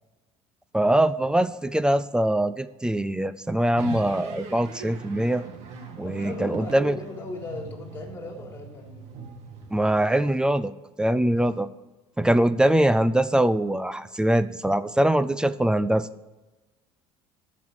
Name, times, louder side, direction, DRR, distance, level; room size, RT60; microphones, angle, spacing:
voice 1, 0.7-5.4 6.0-7.0 9.7-10.7 11.0-11.7 12.2-16.1, right 1 dB, 5° right, 15 dB, 0.4 m, -22 dB
sound 1, 3.8-10.1, right 5 dB, 70° right, 2.1 m, -40 dB
voice 2, 6.0-9.0, left 2 dB, 20° left, 1 dB, 3.6 m, -37 dB
13.5 x 6.1 x 7.4 m, 1.1 s
cardioid pair, 130°, 12 cm